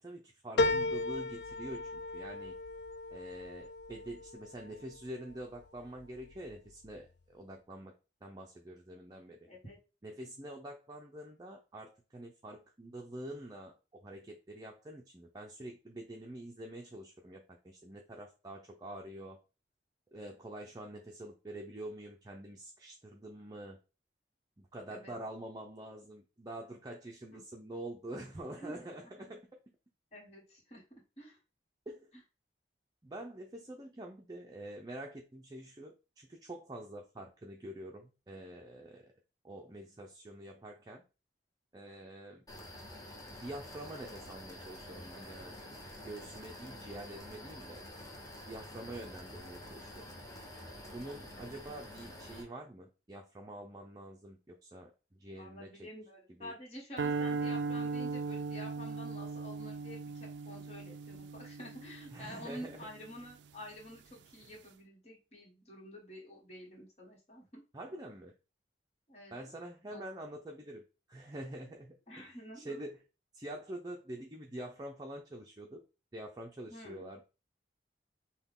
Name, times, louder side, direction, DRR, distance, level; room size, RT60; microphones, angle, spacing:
voice 1, 0.0-2.5 3.1-7.9 8.2-9.4 10.0-19.4 20.1-23.8 24.6-29.4 31.9-32.1 33.0-39.1 39.4-41.0 41.7-42.4 43.4-45.7 46.0-47.8 48.5-50.0 50.9-55.9 56.4-56.5 62.1-62.9 67.7-68.3 69.3-70.8 71.1-73.0 73.3-75.8 76.1-77.2, right 1 dB, 20° right, 1 dB, 0.5 m, -46 dB
sound 1, 0.6-5.3 5.8-6.5 6.9-7.0, left 2 dB, 70° left, 0.4 m, -35 dB
voice 2, 9.4-9.8 24.9-25.1 27.3-27.4 28.6-28.7 29.2-29.3 30.1-30.8 31.2-31.4 55.3-67.6 69.1-69.3 69.9-70.0 72.1-72.9 76.7-77.1, equal, 40° left, -2 dB, 1.5 m, -49 dB
sound 2, 42.5-52.4, left 1 dB, 20° left, 0.9 m, -48 dB
sound 3, 57.0-63.3, right 4 dB, 85° right, 0.4 m, -38 dB
5.8 x 2.3 x 3.6 m, 0.31 s
head